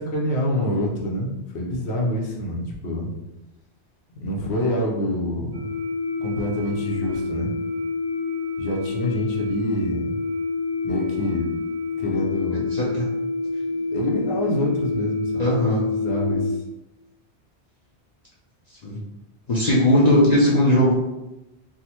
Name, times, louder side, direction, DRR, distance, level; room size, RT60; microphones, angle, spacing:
voice 1, 0.0-3.1 4.1-5.7 6.2-7.5 8.6-10.2 10.8-11.5 12.0-12.6 13.7-15.5 15.9-16.6, equal, 70° left, -1 dB, 0.9 m, -26 dB
sound 1, 5.5-16.5, left 4 dB, 50° right, 0.5 m, -27 dB
voice 2, 12.7-13.0 15.4-15.8 18.8-19.0 19.5-20.9, left 1 dB, 45° left, -6 dB, 0.6 m, -18 dB
3.6 x 2.1 x 2.9 m, 0.98 s
omnidirectional pair, 1.1 m